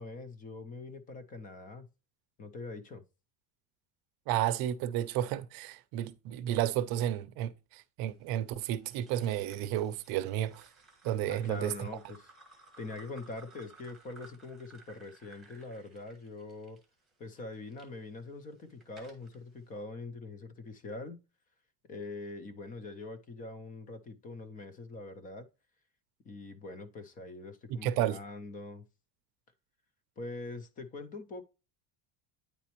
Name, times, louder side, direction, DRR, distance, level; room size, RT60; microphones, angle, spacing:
voice 1, 0.0-1.9 2.4-3.0 11.3-16.8 17.2-21.2 21.9-25.5 26.2-28.8 30.2-31.4, left 3 dB, 20° left, 0.3 m, -43 dB
voice 2, 4.3-10.7 11.0-11.9 27.7-28.2, right 12 dB, 50° right, 0.6 m, -32 dB
sound 1, 8.7-17.9 18.4-19.4, right 4 dB, ahead, 1.4 m, -58 dB
9.3 x 4.1 x 2.9 m
cardioid pair, 160°, 47 cm